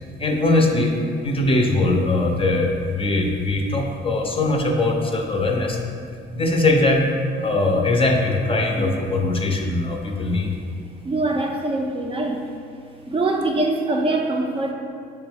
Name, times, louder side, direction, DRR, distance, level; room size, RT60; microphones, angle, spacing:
voice 1, 0.2-1.0 1.2-5.8 6.3-7.1 7.4-10.5, left 2 dB, 30° left, 2 dB, 0.5 m, -21 dB
voice 2, 11.0-12.5 13.1-14.7, right 2 dB, 30° right, 1 dB, 0.4 m, -23 dB
6.6 x 2.2 x 3.3 m, 2.2 s
cardioid pair, 90°, 20 cm